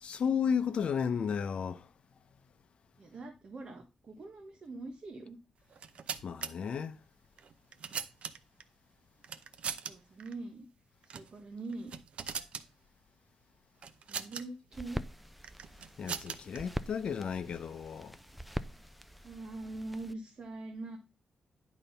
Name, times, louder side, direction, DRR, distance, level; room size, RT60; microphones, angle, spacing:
voice 1, 0.0-1.9 6.2-7.0 16.0-18.1, left 7 dB, 60° left, 0.7 m, -33 dB
voice 2, 3.0-5.4 9.8-10.7 11.0-11.9 14.1-15.0 19.2-21.0, right 2 dB, 45° right, 1.4 m, -43 dB
sound 1, 5.7-6.5 7.4-8.6 9.2-9.9 10.2-10.3 11.0-11.3 11.7-12.7 13.8-14.4 15.4-16.6, right 7 dB, 65° right, 0.7 m, -40 dB
sound 2, 14.7-20.1, equal, 5° right, 0.5 m, -43 dB
10.5 x 4.0 x 5.6 m
wide cardioid pair, 145°, 2 cm